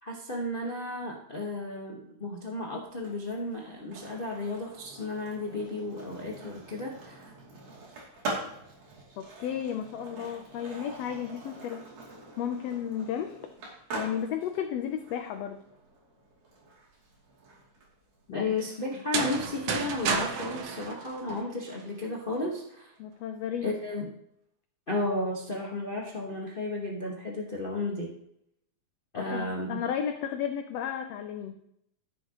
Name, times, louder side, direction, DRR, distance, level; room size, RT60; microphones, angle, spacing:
voice 1, 0.0-7.3 18.3-22.9 23.6-24.1 24.9-28.1 29.1-29.8, left 2 dB, 60° left, -2 dB, 0.5 m, -33 dB
Skateboard, 2.9-18.8, right 2 dB, 90° right, 4.3 m, -44 dB
voice 2, 9.2-11.8 12.4-13.4 13.9-15.6 18.3-18.5 23.0-23.8 29.1-31.6, left 9 dB, 75° left, 6 dB, 1.5 m, -33 dB
sound 1, 18.9-21.8, right 5 dB, 65° right, 1.3 m, -32 dB
14.5 x 7.4 x 3.0 m, 0.76 s
omnidirectional pair, 3.5 m